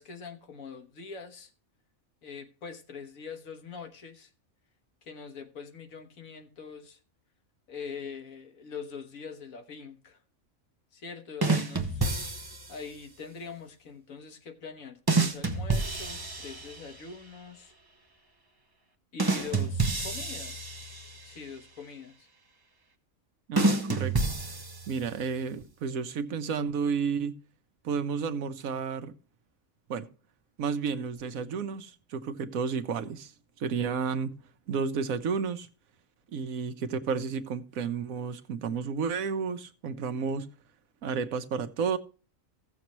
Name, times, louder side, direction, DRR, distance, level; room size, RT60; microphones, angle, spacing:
voice 1, 0.0-1.5 2.2-4.3 5.0-7.0 7.7-10.2 10.9-12.1 12.7-17.7 19.1-20.7 21.2-22.3, left 5 dB, 80° left, 1.6 m, -43 dB
sound 1, 11.4-12.8 15.1-17.0 19.2-21.3 23.6-25.2, right 3 dB, 20° right, 0.9 m, -29 dB
voice 2, 23.5-24.1 24.9-27.4 27.8-29.1 29.9-30.1 30.6-33.3 33.6-34.3 34.7-35.7 36.3-40.5 41.0-42.0, right 6 dB, 85° right, 1.3 m, -31 dB
16.0 x 7.0 x 3.0 m
omnidirectional pair, 1.4 m